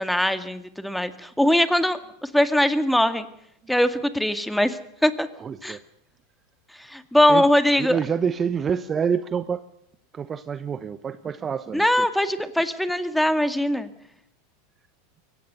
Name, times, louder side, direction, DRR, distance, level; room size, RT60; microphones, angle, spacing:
voice 1, 0.0-3.3 3.7-5.3 5.6-5.8 6.8-8.0 11.7-13.9, left 1 dB, ahead, 11 dB, 2.1 m, -21 dB
voice 2, 5.4-5.8 7.3-7.4 7.8-9.6 10.1-12.1, right 7 dB, 25° right, 13 dB, 1.0 m, -27 dB
23.0 x 17.5 x 6.8 m, 0.76 s
hypercardioid pair, 95°, 0 cm